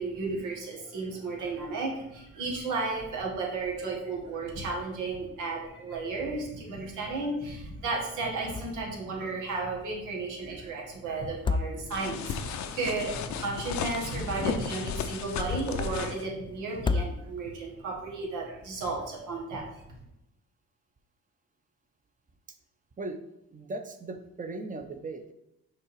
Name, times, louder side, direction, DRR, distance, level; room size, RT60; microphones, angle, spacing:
voice 1, 0.0-19.7, right 3 dB, 90° right, -1 dB, 1.8 m, -33 dB
sound 1, 8.5-9.0 9.3-9.4 11.2-12.3 14.0-14.8 16.7-17.6, left 4 dB, 15° left, 0.3 m, -32 dB
sound 2, 11.9-16.2, left 7 dB, 65° left, 0.7 m, -34 dB
voice 2, 23.5-25.3, right 2 dB, 25° right, 8 dB, 0.8 m, -38 dB
6.0 x 3.8 x 4.8 m, 0.84 s
cardioid pair, 90°, 30 cm